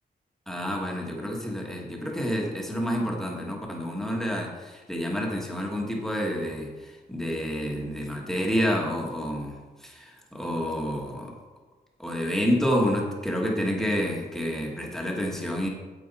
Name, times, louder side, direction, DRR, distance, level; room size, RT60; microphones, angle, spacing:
voice 1, 0.5-11.3 12.0-15.7, equal, ahead, -1 dB, 1.3 m, -29 dB
9.3 x 8.4 x 4.1 m, 1.3 s
wide cardioid pair, 180°, 17 cm